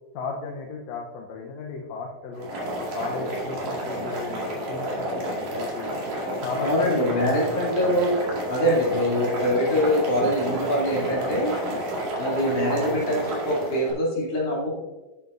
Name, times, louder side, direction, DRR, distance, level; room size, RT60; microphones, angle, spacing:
voice 1, 0.1-2.5 2.9-5.9 6.4-7.9, left 4 dB, 70° left, 0 dB, 2.1 m, -35 dB
Boiling, 2.3-13.9, right 1 dB, 75° right, 3.6 m, -30 dB
voice 2, 6.6-8.1 8.5-11.5 12.2-14.8, equal, 55° left, -5 dB, 3.9 m, -24 dB
11.5 x 8.3 x 2.6 m, 1.2 s
omnidirectional pair, 3.3 m